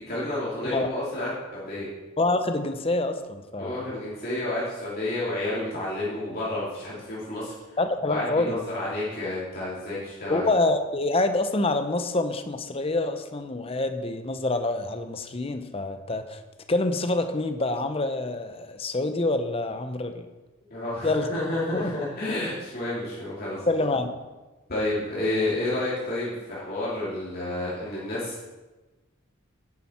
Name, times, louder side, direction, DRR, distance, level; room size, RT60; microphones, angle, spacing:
voice 1, 0.1-1.9 3.6-7.5 8.0-10.5 20.7-23.6 24.7-28.4, left 1 dB, 45° left, -8 dB, 2.7 m, -30 dB
voice 2, 2.2-3.9 7.8-8.6 10.3-16.4 16.7-20.3 21.0-21.3 21.7-21.9 23.7-24.2, left 2 dB, 25° left, 8 dB, 0.7 m, -26 dB
10.5 x 9.7 x 4.3 m, 1.2 s
head